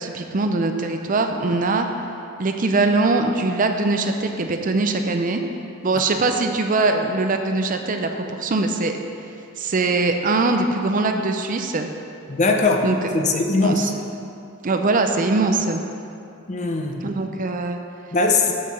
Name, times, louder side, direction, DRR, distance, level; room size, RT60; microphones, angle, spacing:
voice 1, 0.0-1.9 2.4-5.4 5.8-8.9 9.6-11.9 12.8-13.0 13.6-13.9 14.6-15.8 17.0-17.8, right 3 dB, 40° right, 5 dB, 0.5 m, -22 dB
voice 2, 12.3-12.9 13.1-13.9 16.5-17.0 18.1-18.5, left 3 dB, 35° left, 3 dB, 0.7 m, -20 dB
6.4 x 5.9 x 6.8 m, 2.7 s
head